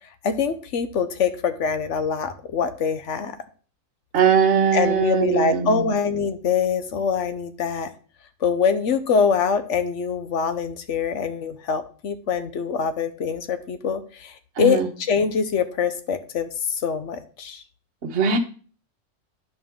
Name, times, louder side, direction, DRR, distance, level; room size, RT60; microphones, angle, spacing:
voice 1, 0.2-3.3 4.7-7.9 8.4-17.6, left 6 dB, 65° left, 9 dB, 1.1 m, -24 dB
voice 2, 4.1-6.0 14.6-14.9 18.0-18.4, right 6 dB, 60° right, 4 dB, 1.3 m, -20 dB
11.0 x 5.2 x 3.7 m, 0.40 s
omnidirectional pair, 1.4 m